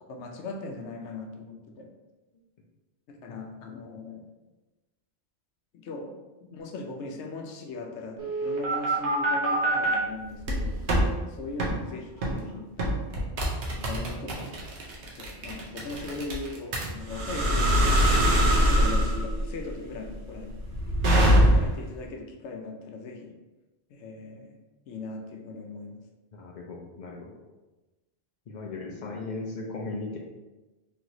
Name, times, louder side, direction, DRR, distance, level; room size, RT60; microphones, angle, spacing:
voice 1, 0.1-1.9 3.1-4.3 5.7-10.9 11.3-13.1 13.7-14.6 15.0-18.1 18.5-20.6 21.3-23.3 23.9-24.6 24.9-26.0, left 3 dB, 85° left, 3 dB, 0.9 m, -39 dB
sound 1, 8.2-10.0 10.4-11.1 11.6-11.8 12.2-12.4 12.8-21.8, equal, 75° right, 1.0 m, -23 dB
voice 2, 26.3-27.3 28.5-30.2, left 3 dB, 60° left, -1 dB, 0.5 m, -37 dB
3.3 x 2.9 x 2.6 m, 1.1 s
omnidirectional pair, 1.1 m